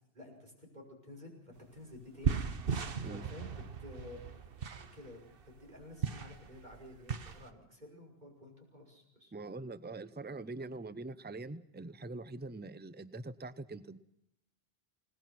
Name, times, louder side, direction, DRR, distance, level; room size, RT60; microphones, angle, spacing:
voice 1, 0.1-2.4 3.1-3.5 3.8-4.2 4.7-9.3, left 1 dB, 45° right, 1 dB, 6.1 m, -52 dB
sound 1, 1.6-1.7 1.9-7.5, right 6 dB, 60° right, 1.3 m, -37 dB
voice 2, 9.3-14.0, right 2 dB, 10° right, 14 dB, 0.7 m, -43 dB
30.0 x 18.5 x 6.0 m, 0.78 s
omnidirectional pair, 1.1 m